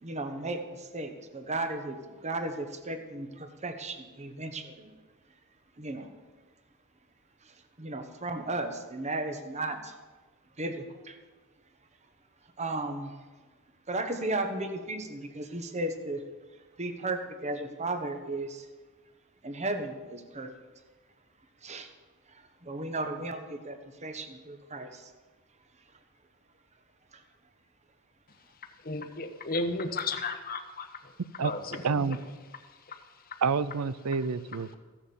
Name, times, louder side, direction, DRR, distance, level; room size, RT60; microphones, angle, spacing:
voice 1, 0.0-4.9 5.8-6.1 7.4-9.9 10.6-11.2 12.6-13.2 13.9-16.2 16.8-18.7 19.4-20.5 21.6-21.9 22.3-25.1 27.1-27.2, right 2 dB, 30° right, 7 dB, 1.2 m, -35 dB
voice 2, 28.8-31.1 31.4-32.2 32.9-33.4, left 3 dB, 40° left, 7 dB, 1.1 m, -34 dB
voice 3, 31.8-32.2 33.4-34.7, right 5 dB, 80° right, 16 dB, 0.6 m, -28 dB
15.5 x 7.2 x 7.1 m, 1.3 s
head